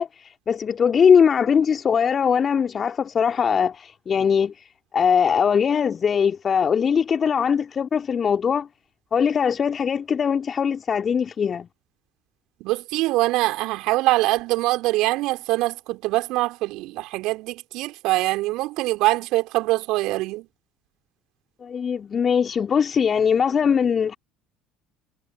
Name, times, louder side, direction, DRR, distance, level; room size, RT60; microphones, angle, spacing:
voice 1, 0.0-4.7 4.9-8.7 9.1-11.7 21.6-24.2, left 7 dB, 35° left, 2.9 m, -21 dB
voice 2, 12.6-20.5, right 19 dB, 60° right, 4.4 m, -23 dB
figure-of-eight pair, 60°, 0 cm